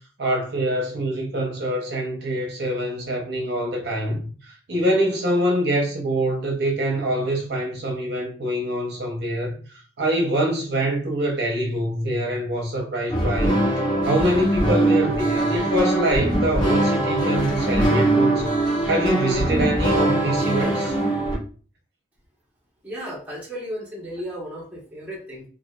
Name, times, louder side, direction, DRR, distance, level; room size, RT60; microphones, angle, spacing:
voice 1, 0.2-4.3 4.7-9.5 10.0-13.6 14.1-18.5 18.9-20.9, right 1 dB, 60° right, 0.6 m, -24 dB
sound 1, 13.1-21.4, right 1 dB, 25° left, 1.3 m, -22 dB
voice 2, 22.8-25.4, equal, 10° right, 0.8 m, -34 dB
2.5 x 2.3 x 2.2 m
head